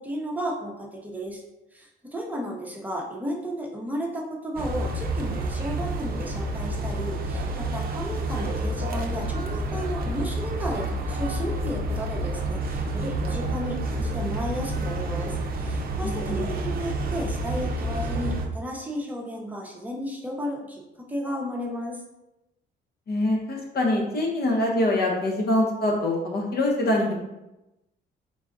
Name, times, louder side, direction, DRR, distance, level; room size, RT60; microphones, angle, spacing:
voice 1, 0.0-1.4 1.7-22.0, equal, 10° right, -1 dB, 0.8 m, -33 dB
sound 1, 4.5-18.5, right 1 dB, 50° right, 0.6 m, -29 dB
voice 2, 16.0-16.4 23.1-27.2, left 1 dB, 50° left, 0 dB, 1.1 m, -24 dB
3.9 x 2.4 x 3.8 m, 0.96 s
cardioid pair, 90°, 20 cm